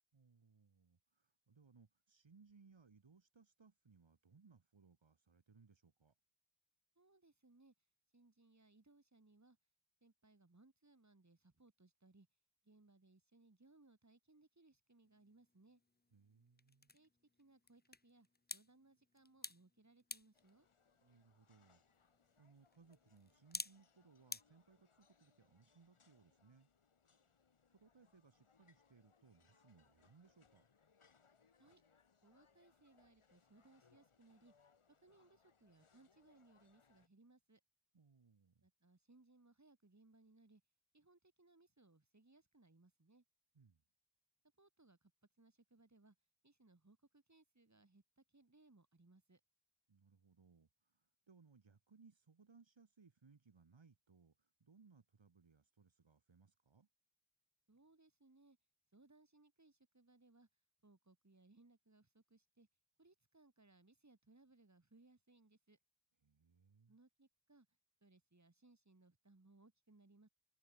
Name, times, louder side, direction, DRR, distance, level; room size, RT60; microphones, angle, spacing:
voice 1, 0.1-6.1 16.1-16.9 21.0-21.8 22.4-26.7 27.1-27.4 27.7-30.7 37.9-38.7 43.5-43.8 49.9-56.9 66.2-67.0, right 5 dB, 65° right, 4.3 m, -68 dB
voice 2, 7.0-7.7 8.1-9.6 10.0-12.3 12.6-15.8 16.9-17.1 17.4-20.7 31.6-31.8 32.2-34.5 35.0-37.6 38.6-40.6 40.9-43.2 44.6-45.1 45.4-46.2 46.4-49.4 57.7-58.6 58.9-60.5 60.8-62.7 63.0-65.8 66.9-67.7 68.0-70.3, right 2 dB, 35° right, 7.5 m, -68 dB
sound 1, 15.0-24.4, left 3 dB, 20° left, 1.2 m, -54 dB
sound 2, 20.3-37.1, left 5 dB, 85° left, 7.7 m, -75 dB
cardioid pair, 50°, 49 cm